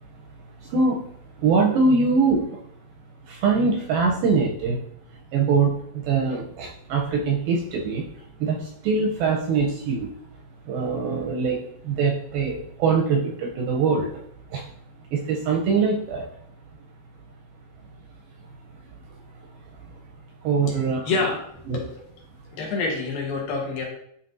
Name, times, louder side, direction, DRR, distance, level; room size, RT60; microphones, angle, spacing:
voice 1, 0.6-1.0 1.4-2.5 3.3-4.8 5.3-8.0 8.4-10.1 10.7-14.2 14.5-14.7 15.1-16.3 19.9-20.0 20.4-21.1 21.7-21.8, right 4 dB, 80° right, 0 dB, 2.2 m, -23 dB
voice 2, 21.0-21.4 21.7-21.9 22.5-23.8, left 3 dB, 70° left, -1 dB, 2.7 m, -26 dB
11.5 x 4.1 x 2.6 m, 0.70 s
omnidirectional pair, 4.7 m